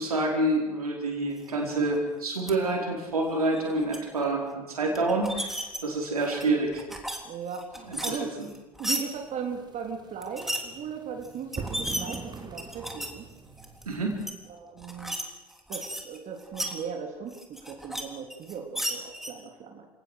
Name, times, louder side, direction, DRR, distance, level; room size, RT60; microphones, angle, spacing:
voice 1, 0.0-5.5 5.8-6.8 7.9-8.0 8.4-8.5 13.9-14.3, right 2 dB, 80° right, 0 dB, 4.9 m, -27 dB
sound 1, 2.3-2.5 3.4-4.0 5.0-5.8 6.2-7.2 7.5-9.0 10.2-10.6 11.2-11.3 11.5-13.1 13.6-13.8 14.2-14.3 14.8-15.2 15.5-16.7 17.3-18.0 18.3-19.3, equal, ahead, 3.5 m, -34 dB
voice 2, 7.2-8.4 8.8-13.3 14.5-15.2 15.7-19.9, right 6 dB, 40° right, 2 dB, 3.5 m, -38 dB
sound 2, 9.1-14.2, right 4 dB, 20° right, 3.2 m, -43 dB
29.0 x 18.0 x 6.5 m, 1.1 s
figure-of-eight pair, 65°, 19 cm